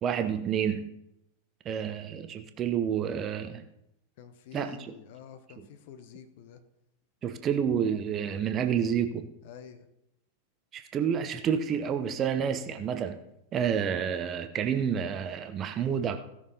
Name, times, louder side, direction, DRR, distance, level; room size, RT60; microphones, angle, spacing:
voice 1, 0.0-0.9 1.6-3.6 4.5-4.9 5.6-5.7 7.2-9.3 10.7-13.2 13.5-16.2, right 8 dB, 30° right, 8 dB, 0.9 m, -29 dB
voice 2, 4.2-6.6 9.4-9.9, left 8 dB, 50° left, 10 dB, 1.1 m, -48 dB
17.0 x 6.4 x 4.1 m, 0.83 s
figure-of-eight pair, 90°, 0 cm